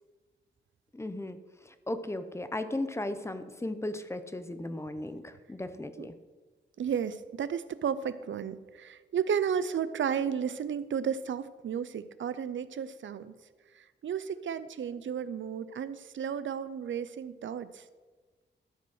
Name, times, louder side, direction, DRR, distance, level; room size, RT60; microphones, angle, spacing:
voice 1, 0.9-1.4 1.7-6.1, left 1 dB, 15° left, 10 dB, 0.6 m, -36 dB
voice 2, 6.8-13.3 13.8-17.8, right 7 dB, 90° right, 14 dB, 0.5 m, -33 dB
12.5 x 5.1 x 6.4 m, 1.4 s
wide cardioid pair, 140°, 19 cm